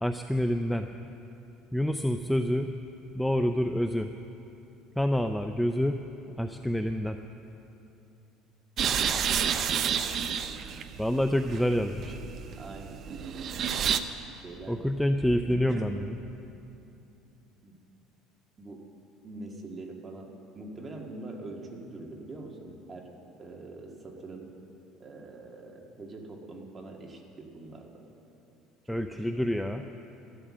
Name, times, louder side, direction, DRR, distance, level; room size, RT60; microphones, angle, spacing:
voice 1, 0.0-0.9 1.7-2.7 3.1-4.1 5.0-6.0 6.4-7.2 11.0-12.2 14.7-16.2 28.9-29.8, equal, ahead, 7 dB, 0.4 m, -27 dB
sound 1, 8.8-14.0, right 8 dB, 40° right, 0.6 m, -30 dB
voice 2, 9.6-10.1 12.5-13.0 14.3-14.8 15.5-16.1 17.6-17.8 18.6-18.8 19.2-20.3 20.6-23.1 23.4-24.5 25.0-28.0 28.9-29.7, right 2 dB, 20° right, 1 dB, 1.8 m, -44 dB
13.5 x 12.5 x 7.5 m, 2.9 s
cardioid pair, 145°, 0 cm